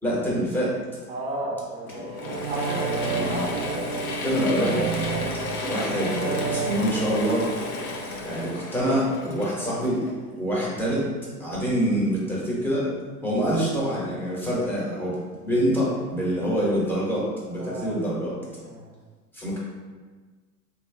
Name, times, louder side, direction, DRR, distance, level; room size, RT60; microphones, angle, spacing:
voice 1, 0.0-0.7 3.1-3.4 4.2-4.8 5.7-7.5 8.2-10.0 10.4-11.0 11.4-12.9 13.2-15.2 15.4-18.3 19.3-19.6, equal, 5° left, -7 dB, 1.1 m, -25 dB
voice 2, 1.1-4.4 4.7-5.6 17.6-18.0 18.6-18.9, right 2 dB, 15° right, -2 dB, 0.7 m, -34 dB
Mechanisms / Drill, 1.9-10.5, left 3 dB, 65° left, 0.8 m, -33 dB
sound 1, 2.1-9.0 9.3-9.4, right 6 dB, 70° right, 0.5 m, -32 dB
3.1 x 2.8 x 3.3 m, 1.4 s
hypercardioid pair, 90°, 47 cm